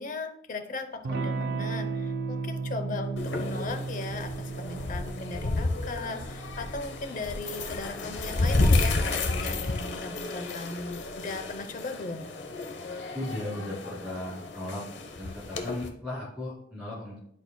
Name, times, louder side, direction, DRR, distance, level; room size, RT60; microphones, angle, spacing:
voice 1, 0.0-12.3, left 3 dB, 45° left, 8 dB, 0.7 m, -38 dB
Electric guitar / Strum, 1.0-9.3, right 4 dB, 60° right, 0.4 m, -35 dB
sound 1, 3.2-15.9, left 2 dB, 80° left, 0.9 m, -31 dB
voice 2, 13.1-14.9 15.2-17.2, left 1 dB, 5° right, -7 dB, 2.1 m, -36 dB
10.5 x 4.4 x 2.2 m, 0.70 s
head